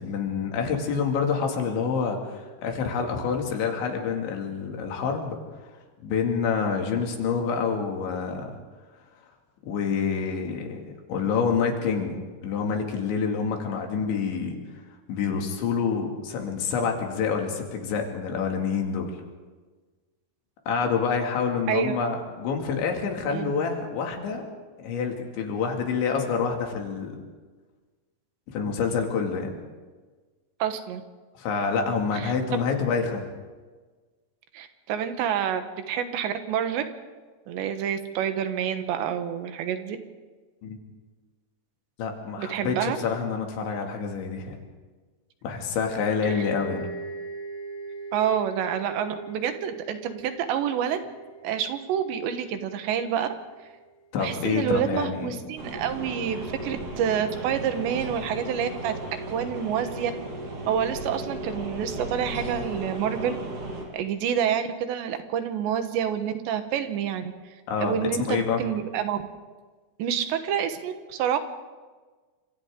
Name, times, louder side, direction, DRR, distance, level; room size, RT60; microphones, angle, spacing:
voice 1, 0.0-5.4 6.0-8.5 9.7-14.6 15.1-19.1 20.7-24.4 24.8-27.2 28.5-29.5 31.4-33.3 40.6-40.8 42.0-44.6 45.4-46.9 54.1-55.4 67.7-68.6, left 5 dB, 80° left, 2 dB, 4.7 m, -27 dB
voice 2, 30.6-31.0 32.1-32.3 34.5-36.8 37.5-40.0 42.4-43.0 46.4-46.5 48.1-51.0 51.4-53.3 54.2-59.0 59.3-60.1 60.7-63.4 63.9-67.2 67.8-69.2 70.0-71.4, right 9 dB, 75° right, 8 dB, 3.4 m, -28 dB
sound 1, 46.3-53.8, right 3 dB, 55° left, 4.5 m, -40 dB
sound 2, 55.6-63.9, right 1 dB, 45° right, 4.4 m, -35 dB
29.0 x 26.0 x 3.8 m, 1.4 s
omnidirectional pair, 5.3 m